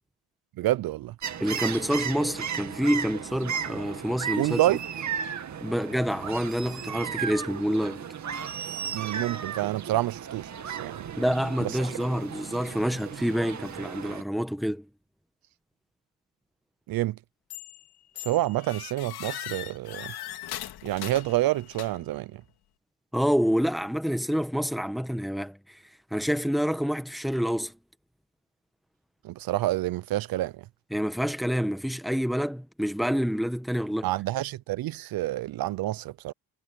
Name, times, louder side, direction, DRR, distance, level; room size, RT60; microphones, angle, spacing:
voice 1, 0.6-1.1 4.4-4.8 8.9-11.1 11.6-11.9 16.9-17.2 18.2-20.1 20.8-22.4 29.2-30.5 34.0-36.3, right 15 dB, 65° right, 0.6 m, -28 dB
sound 1, 1.2-14.2, right 7 dB, 45° right, 2.4 m, -35 dB
voice 2, 1.4-4.6 5.6-8.0 11.2-14.8 23.1-25.8 26.1-27.7 30.9-34.1, equal, ahead, 1.6 m, -27 dB
sound 2, 17.5-17.8 18.2-22.2, left 12 dB, 75° left, 3.3 m, -39 dB
cardioid pair, 105°, 39 cm